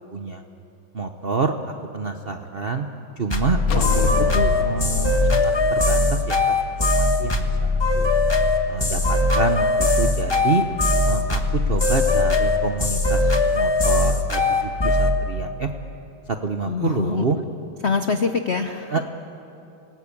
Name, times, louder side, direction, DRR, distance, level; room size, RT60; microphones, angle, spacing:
voice 1, 0.1-0.4 0.9-1.5 1.9-2.9 3.2-4.1 4.3-7.5 7.9-8.1 8.7-10.6 11.0-11.4 11.7-15.7 16.3-17.4 18.9-19.0, right 4 dB, 70° right, 6 dB, 0.5 m, -27 dB
sound 1, 3.3-15.2, left 2 dB, 15° left, 1.0 m, -20 dB
sound 2, 3.7-7.1, left 4 dB, 50° left, 1.2 m, -28 dB
voice 2, 16.7-17.3 17.8-19.0, left 5 dB, 80° left, 7 dB, 0.5 m, -24 dB
27.0 x 19.0 x 8.5 m, 2.9 s
omnidirectional pair, 2.4 m